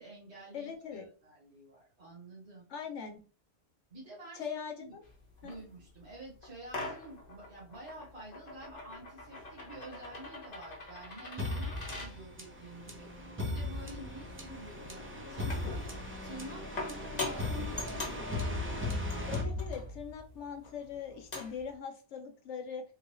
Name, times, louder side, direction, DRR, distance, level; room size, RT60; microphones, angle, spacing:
voice 1, 0.0-2.6 3.9-4.4 4.8-5.0 5.4-18.8, right 2 dB, 70° right, -5 dB, 1.6 m, -49 dB
voice 2, 0.5-1.1 2.7-3.2 4.3-5.0 5.4-5.5 19.3-22.8, left 7 dB, 85° left, 4 dB, 1.0 m, -41 dB
sound 1, 5.0-21.7, left 2 dB, 40° left, 0.9 m, -45 dB
sound 2, 11.4-20.2, left 2 dB, 15° right, 0.5 m, -37 dB
3.7 x 2.3 x 3.0 m, 0.36 s
omnidirectional pair, 1.2 m